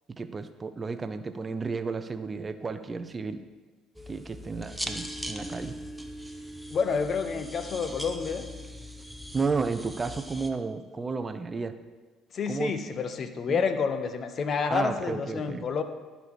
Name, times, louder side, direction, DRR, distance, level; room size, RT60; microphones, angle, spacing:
voice 1, 0.2-3.4 4.1-5.8 9.3-11.8 12.5-12.7 13.5-13.6 14.7-15.7, right 4 dB, 30° right, 11 dB, 0.6 m, -32 dB
sound 1, 4.0-10.5, equal, ahead, 0.9 m, -40 dB
voice 2, 6.7-8.4 12.3-15.8, left 5 dB, 50° left, 8 dB, 0.8 m, -29 dB
11.5 x 4.1 x 6.2 m, 1.3 s
hypercardioid pair, 60°, 0 cm